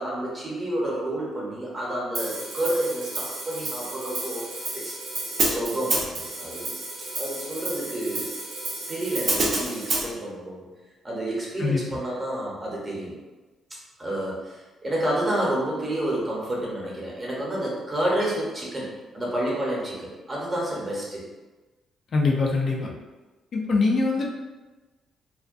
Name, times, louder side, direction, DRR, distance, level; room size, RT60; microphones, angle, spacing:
voice 1, 0.0-4.5 4.7-4.9 5.4-6.7 7.0-8.3 8.9-10.7 11.0-13.1 14.0-21.2, right 1 dB, 25° right, -5 dB, 0.8 m, -29 dB
Hi-hat, 2.1-10.0, right 2 dB, 55° right, 0.6 m, -30 dB
voice 2, 22.1-22.9 23.5-24.3, left 3 dB, 55° left, -1 dB, 0.4 m, -23 dB
2.3 x 2.1 x 2.5 m, 1.2 s
cardioid pair, 90°, 0 cm